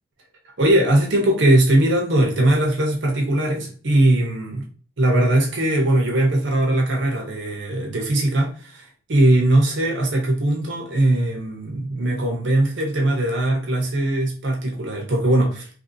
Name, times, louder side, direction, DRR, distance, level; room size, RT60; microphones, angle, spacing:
voice 1, 0.6-4.6 5.0-15.7, right 1 dB, 65° right, 1 dB, 0.7 m, -20 dB
2.9 x 2.6 x 2.6 m, 0.41 s
head